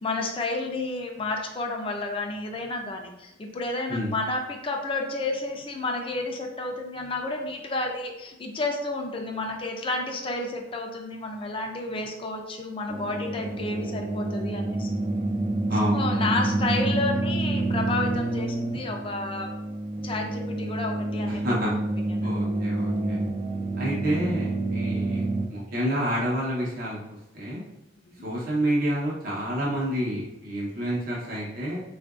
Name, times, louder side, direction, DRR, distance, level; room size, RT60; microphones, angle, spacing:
voice 1, 0.0-14.9 15.9-19.5 20.0-21.4 22.1-22.3, left 2 dB, 30° left, 2 dB, 0.5 m, -31 dB
sound 1, 12.9-25.5, right 2 dB, 30° right, 0.3 m, -28 dB
voice 2, 15.7-16.3 21.3-21.7 22.2-23.2 23.8-27.0 27.3-27.6 28.2-31.8, equal, 50° right, -6 dB, 0.8 m, -29 dB
3.7 x 2.5 x 2.4 m, 0.92 s
head